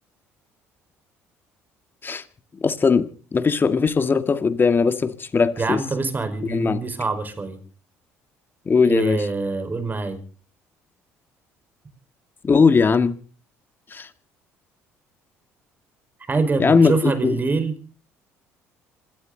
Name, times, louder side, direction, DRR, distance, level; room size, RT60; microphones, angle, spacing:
voice 1, 2.6-5.8 6.4-6.8 8.7-9.3 12.4-13.2 13.9-14.1 16.6-17.4, left 5 dB, 35° left, 1.9 m, -19 dB
voice 2, 5.6-7.6 8.9-10.2 16.3-17.7, right 3 dB, 30° right, 4.9 m, -25 dB
26.5 x 13.0 x 4.0 m
hypercardioid pair, 65°, 7 cm